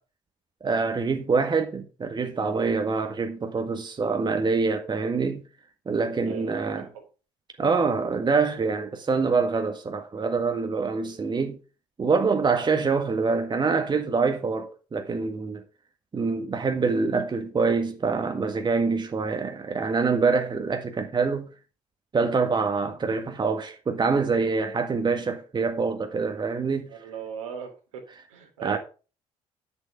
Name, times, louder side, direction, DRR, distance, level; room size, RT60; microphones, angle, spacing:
voice 1, 0.6-5.4 5.8-6.9 7.6-11.6 12.0-15.6 16.1-21.5 22.1-26.9 28.6-28.8, right 4 dB, 25° right, 1.7 m, -25 dB
voice 2, 6.3-6.9 26.9-28.0 28.3-28.8, right 8 dB, 70° right, 3.2 m, -38 dB
11.0 x 7.2 x 5.4 m
figure-of-eight pair, 55°, 17 cm